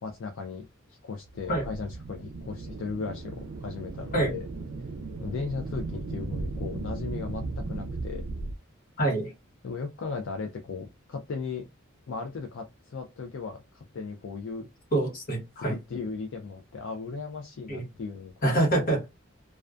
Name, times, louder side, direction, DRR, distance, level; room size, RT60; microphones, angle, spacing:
voice 1, 0.0-4.5 5.2-8.2 9.6-11.6 12.1-14.7 15.7-18.3 18.8-18.9, left 4 dB, 65° left, 0.4 m, -37 dB
sound 1, 1.3-8.5, right 3 dB, 80° right, 0.4 m, -36 dB
voice 2, 9.0-9.3 14.9-15.7 17.7-17.8 18.4-19.2, right 2 dB, 45° left, 1.2 m, -25 dB
2.3 x 2.2 x 2.4 m
head